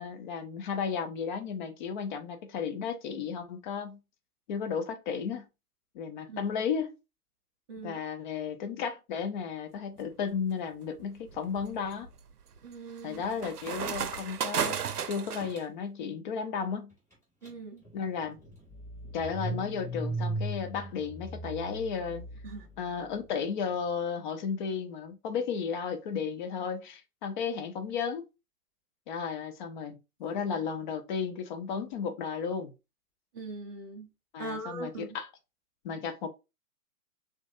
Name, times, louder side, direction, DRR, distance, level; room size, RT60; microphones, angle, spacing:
voice 1, 0.0-4.0 4.5-5.5 5.9-7.0 7.8-12.1 13.0-14.8 15.1-16.9 17.9-18.4 19.1-22.2 22.8-28.2 29.1-32.7 34.3-35.3 35.8-36.3, left 6 dB, 30° left, 0.8 m, -34 dB
voice 2, 7.7-8.0 12.6-13.2 17.4-17.9 22.4-22.7 33.3-34.1 34.4-35.2, right 2 dB, 15° right, 0.4 m, -41 dB
sound 1, 10.0-10.4 11.0-15.6, right 7 dB, 80° right, 0.6 m, -35 dB
Car / Engine starting, 17.4-17.5 17.8-23.1, right 1 dB, 5° left, 2.1 m, -37 dB
6.1 x 2.6 x 2.4 m
figure-of-eight pair, 115°, 45 cm